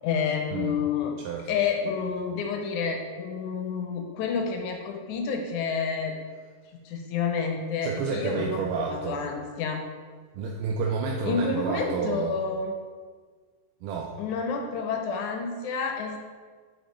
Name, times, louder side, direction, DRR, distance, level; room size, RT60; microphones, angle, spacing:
voice 1, 0.0-1.1 1.5-6.2 6.7-9.8 11.3-12.8 14.2-16.2, left 5 dB, 80° left, 3 dB, 1.9 m, -29 dB
voice 2, 7.8-9.2 10.3-12.4 13.8-14.1, right 5 dB, 85° right, -1 dB, 2.1 m, -30 dB
8.3 x 3.8 x 3.1 m, 1.5 s
omnidirectional pair, 3.7 m